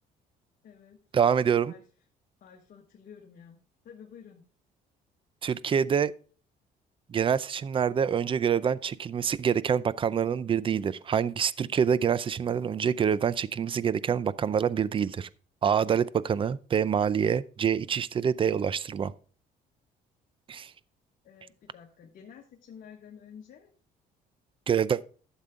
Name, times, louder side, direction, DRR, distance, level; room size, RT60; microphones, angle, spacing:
voice 1, 0.6-1.0 1.6-1.8 2.4-3.6 3.8-4.5 21.2-23.7, left 7 dB, 55° left, 1.5 m, -50 dB
voice 2, 1.1-1.7 5.4-6.1 7.1-15.3 15.6-19.1 20.5-20.7 24.7-25.0, right 7 dB, 30° right, 0.5 m, -26 dB
12.0 x 7.3 x 3.7 m
cardioid pair, 110°, 17 cm